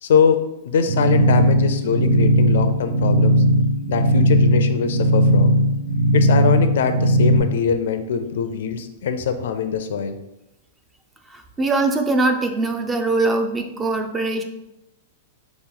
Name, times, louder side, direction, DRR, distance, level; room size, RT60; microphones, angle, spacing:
voice 1, 0.0-3.4 3.9-5.5 6.1-10.2, left 6 dB, 75° left, 9 dB, 0.4 m, -22 dB
sound 1, 0.9-7.4, right 1 dB, 80° right, 0.9 m, -17 dB
voice 2, 11.3-14.4, right 2 dB, 15° right, 5 dB, 0.4 m, -22 dB
3.8 x 3.0 x 3.8 m, 0.90 s
supercardioid pair, 150°, 0 cm